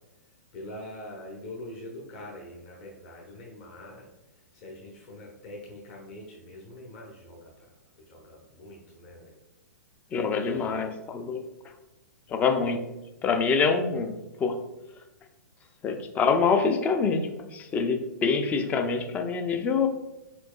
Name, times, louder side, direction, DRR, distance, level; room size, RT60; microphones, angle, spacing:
voice 1, 0.5-4.1 4.5-7.5 8.1-9.3 10.4-10.8 12.3-12.5, left 1 dB, 40° left, -3 dB, 0.9 m, -44 dB
voice 2, 10.1-11.4 12.3-12.8 13.2-14.5 15.8-19.9, left 5 dB, 15° left, 6 dB, 0.4 m, -25 dB
4.4 x 4.1 x 2.3 m, 0.98 s
figure-of-eight pair, 110°, 9 cm